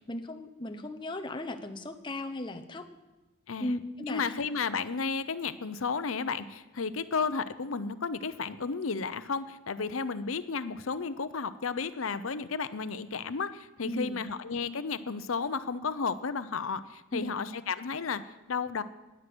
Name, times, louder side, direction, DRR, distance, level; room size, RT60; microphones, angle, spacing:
voice 1, 0.1-2.9 3.6-4.2 13.8-14.2 17.1-17.4, left 1 dB, 25° left, 6 dB, 0.9 m, -36 dB
voice 2, 3.5-3.8 4.1-18.2 18.5-18.8, left 5 dB, 80° left, 13 dB, 0.7 m, -33 dB
19.5 x 8.2 x 6.2 m, 1.1 s
head